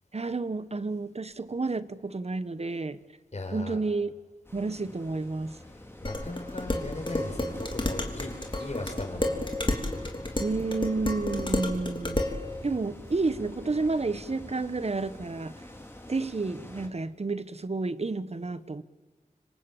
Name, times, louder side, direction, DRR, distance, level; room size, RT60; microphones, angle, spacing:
voice 1, 0.1-3.0 3.5-4.1 4.5-5.6 10.4-12.2 12.6-15.6 16.1-18.8, right 3 dB, 50° right, 15 dB, 1.2 m, -30 dB
voice 2, 3.3-3.8 5.6-9.5, left 2 dB, 50° left, 4 dB, 5.4 m, -38 dB
sound 1, 4.4-16.9, left 1 dB, 15° left, 3.7 m, -46 dB
Dishes pots and pans, 6.0-12.4, left 1 dB, 35° left, 3.4 m, -31 dB
26.0 x 25.5 x 9.0 m, 1.3 s
wide cardioid pair, 65°, 14 cm